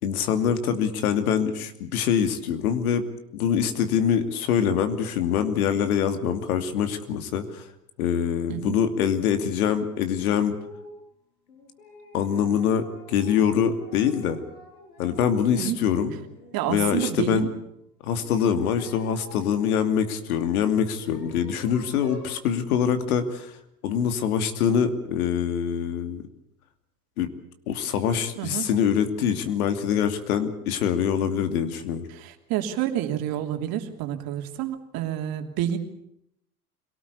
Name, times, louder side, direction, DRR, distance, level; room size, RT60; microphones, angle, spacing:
voice 1, 0.0-3.0 3.3-7.6 8.0-10.6 12.1-14.4 15.0-16.2 16.7-17.5 18.0-23.5 23.8-26.2 27.2-27.3 27.7-32.1, left 8 dB, 70° left, 8 dB, 2.8 m, -24 dB
sound 1, 10.6-11.0 11.5-15.5 15.9-17.5 18.2-19.8 20.6-22.3, equal, 85° left, 5.6 m, -48 dB
voice 2, 16.5-17.5 28.4-28.7 32.1-35.8, right 11 dB, 50° right, 5 dB, 3.1 m, -29 dB
26.0 x 18.5 x 8.4 m, 0.79 s
hypercardioid pair, 90°, 45 cm